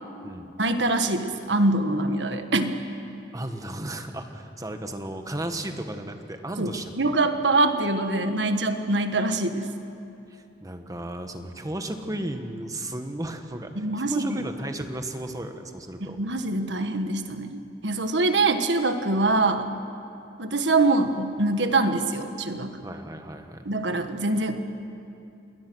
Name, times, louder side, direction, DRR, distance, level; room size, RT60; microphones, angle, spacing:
voice 1, 0.6-2.8 6.6-6.7 7.0-9.7 13.8-14.4 16.0-19.7 20.4-22.8 23.6-24.6, right 2 dB, 85° right, 7 dB, 1.5 m, -24 dB
voice 2, 3.3-7.1 10.3-16.2 22.8-23.7, right 1 dB, 20° right, 6 dB, 1.4 m, -34 dB
28.0 x 20.5 x 6.3 m, 2.7 s
head